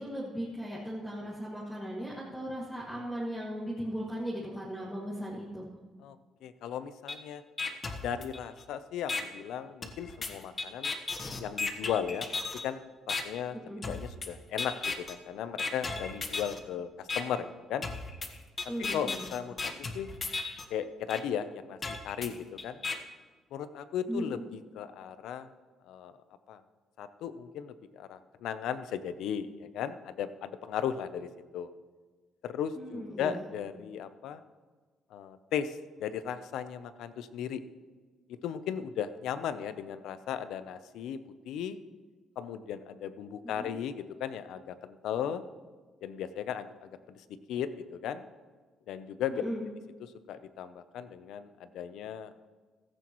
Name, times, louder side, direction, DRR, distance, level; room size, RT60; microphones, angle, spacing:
voice 1, 0.0-5.7 13.5-13.9 18.7-19.3 24.1-24.5 32.8-33.5 43.6-43.7 49.3-49.6, equal, 5° left, -7 dB, 2.2 m, -37 dB
voice 2, 6.4-7.4 8.0-10.9 11.4-12.3 12.6-13.5 13.9-17.9 18.9-20.1 20.7-21.8 22.0-22.8 23.5-25.5 25.9-26.1 26.5-26.6 27.0-31.3 31.5-31.7 32.4-34.4 35.1-37.6 38.3-41.2 41.4-41.8 42.4-45.4 46.0-47.2 47.5-48.2 48.9-49.4 50.3-52.3, left 9 dB, 80° left, 12 dB, 0.7 m, -36 dB
sound 1, 7.1-7.2 7.6-8.6 9.1-9.2 9.8-12.6 13.1-13.2 13.8-14.3 14.6-15.1 15.6-16.6 17.1-17.2 17.8-20.6 21.1-21.2 21.8-22.9, left 4 dB, 35° left, 1.2 m, -35 dB
15.5 x 14.0 x 3.1 m, 1.4 s
cardioid pair, 120°, 0 cm